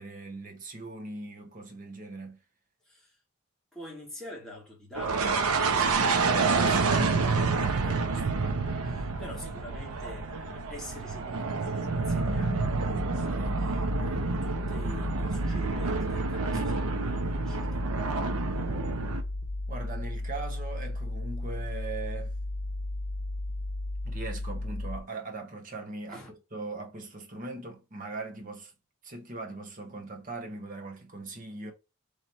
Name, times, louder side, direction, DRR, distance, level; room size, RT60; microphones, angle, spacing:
voice 1, 0.0-2.4 19.7-22.3 24.0-26.2 26.5-28.7 29.0-31.7, right 3 dB, 35° right, 0.9 m, -40 dB
voice 2, 2.8-3.2 3.7-18.2 26.1-26.3, left 1 dB, ahead, 1.4 m, -47 dB
sound 1, 5.0-19.2, right 4 dB, 85° right, 0.7 m, -28 dB
sound 2, 12.0-25.0, left 1 dB, 25° left, 1.1 m, -34 dB
3.2 x 3.0 x 4.1 m
head